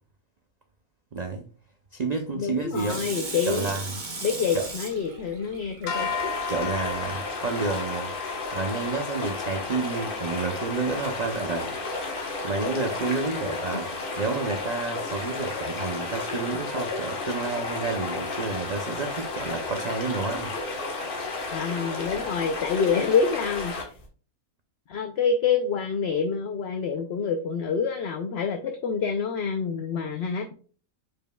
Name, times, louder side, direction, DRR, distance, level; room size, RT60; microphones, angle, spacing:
voice 1, 1.1-1.4 1.9-3.0 3.5-4.0 4.5-4.7 6.5-8.1 8.5-11.8 12.4-13.9 14.2-20.6, right 4 dB, 65° right, 0.4 m, -30 dB
voice 2, 2.4-3.7 4.2-6.1 13.3-13.5 21.5-23.9 24.9-30.5, left 6 dB, 60° left, 0.7 m, -27 dB
Water tap faucet / Sink (filling or washing), 2.7-6.5 7.0-7.1, right 3 dB, 35° right, 1.1 m, -37 dB
sound 1, 5.9-12.2, left 5 dB, 85° left, 1.5 m, -37 dB
sound 2, 5.9-24.0, left 3 dB, 40° left, 1.3 m, -33 dB
5.1 x 4.7 x 2.2 m
omnidirectional pair, 1.5 m